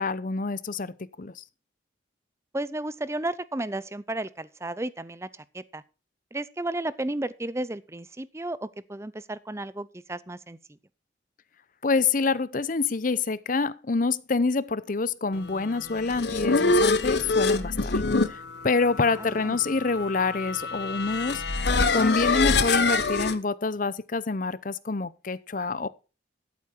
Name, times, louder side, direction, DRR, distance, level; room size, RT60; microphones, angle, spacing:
voice 1, 0.0-1.4 11.8-17.9 18.3-21.4 21.9-25.9, left 4 dB, 45° left, 0.7 m, -27 dB
voice 2, 2.5-5.8 6.3-10.6 19.1-19.6, right 1 dB, 15° right, 0.6 m, -33 dB
sound 1, 15.8-23.4, left 3 dB, 65° left, 1.1 m, -25 dB
13.5 x 8.4 x 4.4 m
head